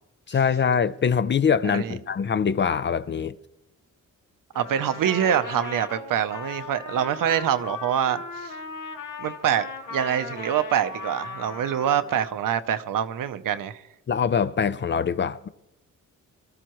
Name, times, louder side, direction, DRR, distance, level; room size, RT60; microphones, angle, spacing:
voice 1, 0.3-3.4 14.1-15.5, left 6 dB, 35° left, 0.5 m, -23 dB
voice 2, 1.6-2.0 4.5-8.5 9.2-13.8, right 9 dB, 80° right, 0.8 m, -25 dB
Trumpet, 4.5-12.4, left 4 dB, 75° left, 2.4 m, -37 dB
24.0 x 13.5 x 3.1 m
wide cardioid pair, 145°, 32 cm